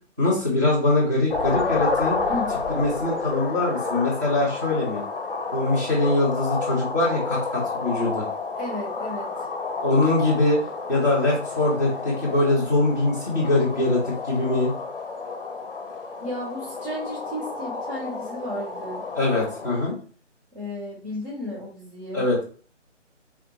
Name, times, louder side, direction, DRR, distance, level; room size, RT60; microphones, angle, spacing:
voice 1, 0.2-2.2 2.7-5.0 5.5-8.3 9.8-10.6 10.9-14.7 19.2-19.9 22.1-22.4, left 2 dB, 15° right, -6 dB, 0.7 m, -22 dB
sound 1, 1.3-19.7, left 4 dB, 50° left, 0.6 m, -30 dB
voice 2, 8.5-9.5 16.2-19.0 20.5-22.2, left 1 dB, 40° right, -4 dB, 1.3 m, -33 dB
3.4 x 2.5 x 2.8 m, 0.42 s
figure-of-eight pair, 160°, 37 cm